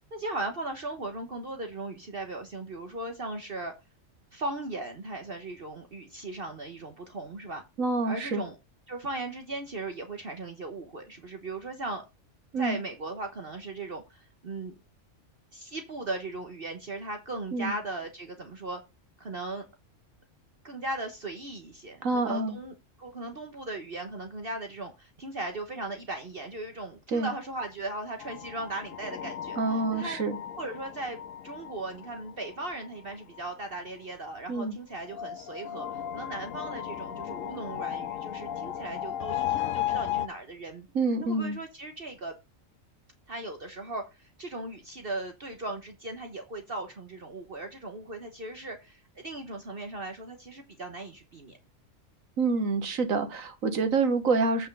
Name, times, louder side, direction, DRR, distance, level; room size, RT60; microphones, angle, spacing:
voice 1, 0.1-3.7 4.3-7.6 8.0-8.6 8.9-12.0 12.6-14.7 15.5-18.8 19.2-19.6 20.6-30.2 30.6-31.2 31.4-40.9 41.2-42.3 43.3-51.6, right 2 dB, 45° right, 1.4 m, -37 dB
voice 2, 7.8-8.4 12.5-12.8 17.5-17.7 22.0-22.6 27.1-27.3 29.6-30.4 34.5-34.8 41.0-41.6 52.4-54.7, right 3 dB, 90° right, 1.7 m, -27 dB
sound 1, 28.2-33.5 35.0-40.3, left 11 dB, 80° left, 1.1 m, -35 dB
8.4 x 5.6 x 5.4 m
omnidirectional pair, 1.3 m